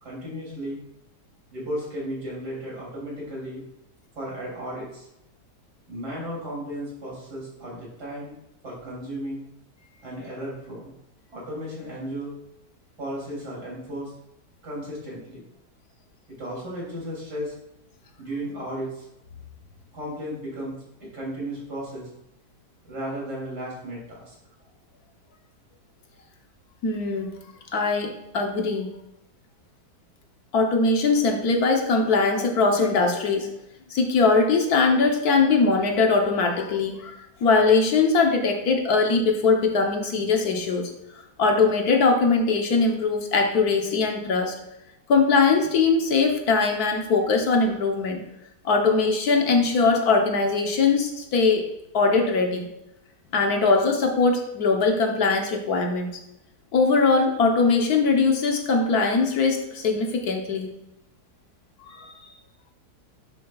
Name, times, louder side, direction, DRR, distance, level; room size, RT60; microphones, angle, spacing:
voice 1, 0.0-0.8 1.5-3.6 4.2-5.1 5.9-8.3 8.6-9.4 10.0-10.9 11.3-12.3 13.0-14.1 14.6-15.4 16.4-17.5 18.2-19.1 19.9-20.8 21.1-22.1 22.8-24.3, equal, 70° right, -5 dB, 3.6 m, -34 dB
voice 2, 26.8-27.4 27.7-28.9 30.5-33.5 33.9-40.9 41.4-44.5 45.1-48.2 48.6-51.7 51.9-52.7 53.3-56.1 56.7-60.7 61.8-62.3, left 4 dB, 65° left, 3 dB, 1.4 m, -21 dB
9.7 x 7.1 x 2.4 m, 0.84 s
omnidirectional pair, 1.8 m